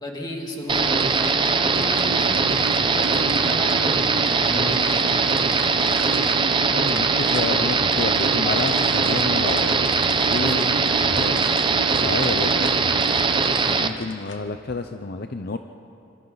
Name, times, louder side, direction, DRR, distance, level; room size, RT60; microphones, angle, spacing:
voice 1, 0.0-5.4 10.4-10.8, equal, 20° left, 0 dB, 2.6 m, -33 dB
sound 1, 0.7-14.4, left 5 dB, 75° left, 1.3 m, -42 dB
sound 2, 0.7-13.9, right 4 dB, 25° right, 0.8 m, -21 dB
sound 3, 1.7-13.4, right 5 dB, 85° right, 0.4 m, -34 dB
voice 2, 6.7-9.8 10.3-10.7 11.0-11.4 12.0-12.7 13.7-15.6, left 3 dB, 55° left, 7 dB, 0.7 m, -29 dB
26.5 x 26.5 x 4.0 m, 2.6 s
head